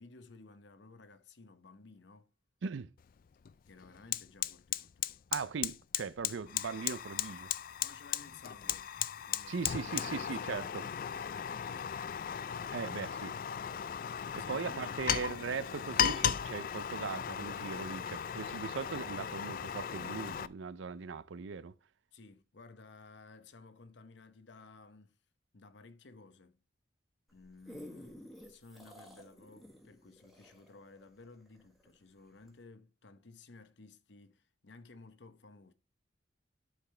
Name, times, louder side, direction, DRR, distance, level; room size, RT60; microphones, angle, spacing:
voice 1, 0.0-2.3 3.7-5.2 7.8-8.9 9.2-12.7 14.4-15.7 22.1-25.2 25.5-26.6 27.3-35.7, left 3 dB, 65° left, 0.8 m, -56 dB
voice 2, 2.6-2.9 5.3-7.5 9.5-10.9 12.7-13.4 14.4-21.7, right 5 dB, 75° right, 0.5 m, -39 dB
Fire, 3.0-3.1 3.5-20.5, left 9 dB, 45° left, 0.3 m, -36 dB
sound 1, 27.3-32.0 32.5-32.6, equal, ahead, 1.6 m, -52 dB
12.0 x 4.9 x 3.3 m
head